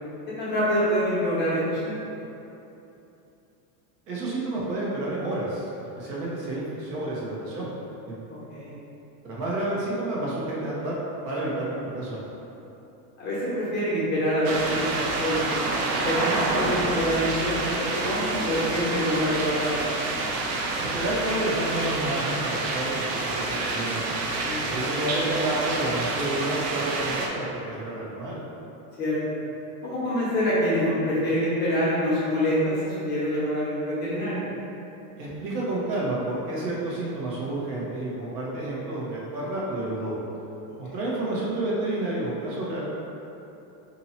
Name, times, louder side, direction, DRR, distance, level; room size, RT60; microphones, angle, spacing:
voice 1, 0.4-1.9 8.3-8.7 13.2-15.4 16.0-19.9 24.4-24.8 29.0-29.2 29.8-34.4 40.8-41.0, equal, 20° left, -9 dB, 0.7 m, -26 dB
voice 2, 4.1-5.7 6.0-7.7 8.0-8.1 9.2-11.0 11.2-12.2 20.8-24.0 24.5-28.4 35.2-40.1 40.8-42.8, right 1 dB, 80° right, -6 dB, 1.2 m, -30 dB
sound 1, 14.4-27.3, right 3 dB, 60° right, 0.6 m, -28 dB
2.8 x 2.7 x 4.2 m, 2.9 s
supercardioid pair, 160°, 47 cm